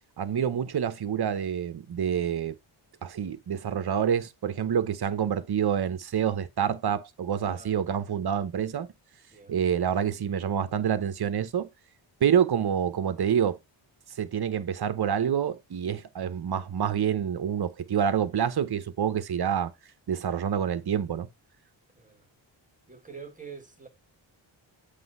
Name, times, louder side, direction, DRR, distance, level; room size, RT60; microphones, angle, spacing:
voice 1, 0.2-2.5 3.0-8.9 9.5-11.7 12.2-13.6 14.1-19.7 20.1-21.3, right 8 dB, 50° right, 0.9 m, -27 dB
voice 2, 7.5-7.9 9.3-9.5 21.9-22.2 22.9-23.9, right 5 dB, 15° right, 1.7 m, -45 dB
7.7 x 3.4 x 5.4 m
wide cardioid pair, 95°, 48 cm